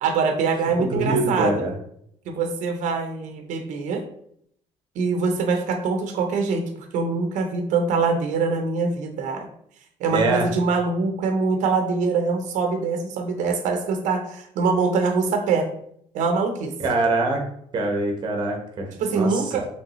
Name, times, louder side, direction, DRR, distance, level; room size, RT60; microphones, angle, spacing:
voice 1, 0.0-1.5 2.3-4.0 5.0-9.5 10.0-15.7 16.1-16.7 19.0-19.7, right 4 dB, 80° right, 5 dB, 0.7 m, -24 dB
voice 2, 0.8-1.7 10.1-10.5 16.8-17.4 17.7-19.7, right 2 dB, 40° right, 3 dB, 1.1 m, -24 dB
5.3 x 3.3 x 3.0 m, 0.69 s
cardioid pair, 145°, 12 cm